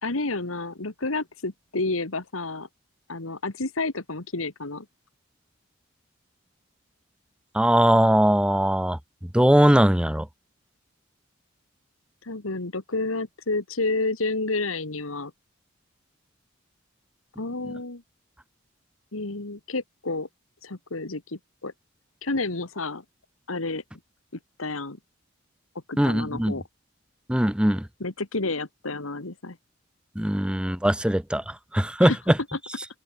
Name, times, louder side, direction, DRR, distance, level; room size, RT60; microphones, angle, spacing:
voice 1, 0.0-2.7 3.1-4.9 12.2-15.3 17.4-18.0 19.1-20.3 20.6-21.7 22.2-23.0 23.5-23.8 24.6-25.0 25.9-26.6 28.0-29.6 32.0-32.2 32.5-32.6, left 3 dB, 85° left, 2.0 m, -30 dB
voice 2, 7.5-9.0 9.3-10.3 26.0-26.5 27.3-27.9 30.2-32.1, equal, 5° right, 0.7 m, -20 dB
open air
head